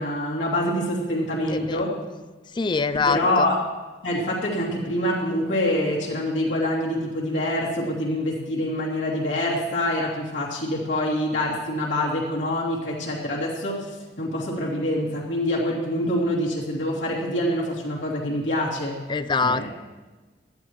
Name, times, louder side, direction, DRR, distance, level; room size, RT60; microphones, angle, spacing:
voice 1, 0.0-2.0 3.0-3.7 4.0-19.0 19.4-19.7, left 1 dB, 80° left, -6 dB, 2.9 m, -25 dB
voice 2, 1.5-1.8 2.5-3.5 19.1-19.7, left 4 dB, 25° left, 13 dB, 0.4 m, -24 dB
19.5 x 13.0 x 3.1 m, 1.2 s
head